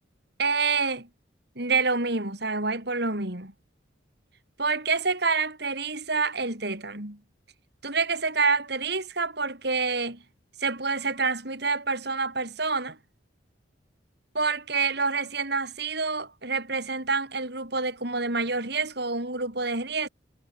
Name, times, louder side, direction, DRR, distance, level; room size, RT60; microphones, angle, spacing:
voice 1, 0.4-1.1 1.5-3.5 4.6-7.2 7.8-10.2 10.6-13.0 14.3-20.1, right 4 dB, 55° right, 4.9 m, -27 dB
head